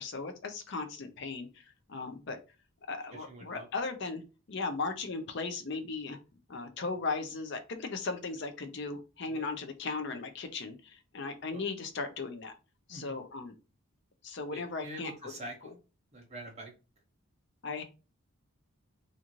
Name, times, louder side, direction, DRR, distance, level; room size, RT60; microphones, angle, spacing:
voice 1, 0.0-2.4 2.9-4.2 4.5-6.2 6.5-12.5 12.9-13.5 14.2-15.3 17.6-17.8, left 3 dB, 55° left, 7 dB, 0.5 m, -37 dB
voice 2, 3.1-3.7 9.3-9.5 11.5-11.6 12.9-13.2 14.5-15.7 16.1-16.7, right 1 dB, 30° right, 0 dB, 0.7 m, -45 dB
2.5 x 2.5 x 3.0 m, 0.31 s
head